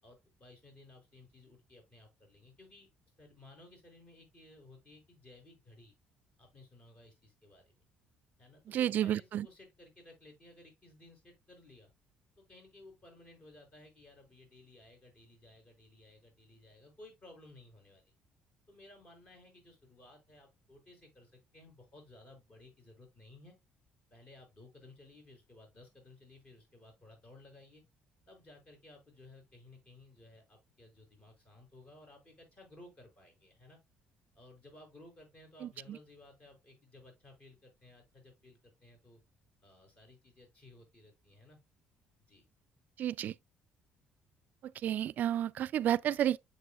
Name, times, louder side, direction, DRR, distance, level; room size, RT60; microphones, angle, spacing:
voice 1, 0.0-2.9 3.2-5.9 6.4-7.8 8.4-11.9 12.4-18.1 18.7-23.6 24.1-27.8 28.3-33.8 34.4-39.2 39.6-41.6 42.3-42.4, left 2 dB, 40° left, 5.8 m, -57 dB
voice 2, 8.7-9.5 35.6-36.0 43.0-43.3 44.8-46.4, right 11 dB, 55° right, 0.4 m, -31 dB
8.3 x 7.4 x 2.3 m
cardioid pair, 110°, 3 cm